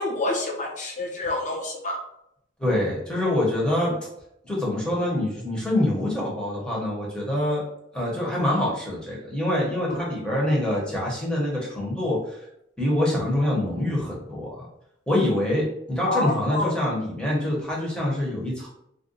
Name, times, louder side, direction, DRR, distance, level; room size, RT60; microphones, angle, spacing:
voice 1, 0.0-2.0 16.1-16.7, left 2 dB, 40° left, 0 dB, 0.7 m, -27 dB
voice 2, 2.6-3.9 4.4-7.7 7.9-12.4 12.8-14.7 15.1-18.7, left 1 dB, 5° left, -5 dB, 0.8 m, -25 dB
2.5 x 2.2 x 3.9 m, 0.78 s
head